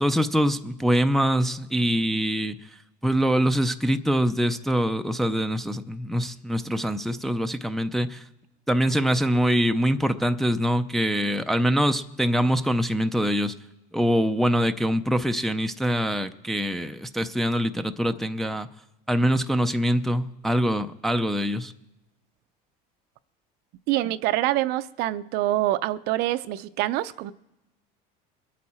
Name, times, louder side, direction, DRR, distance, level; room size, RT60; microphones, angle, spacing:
voice 1, 0.0-2.6 3.0-8.2 8.7-13.5 13.9-18.7 19.1-21.7, equal, ahead, 0.4 m, -24 dB
voice 2, 23.9-27.3, right 15 dB, 60° right, 0.5 m, -25 dB
22.5 x 8.5 x 4.3 m
cardioid pair, 140°, 19 cm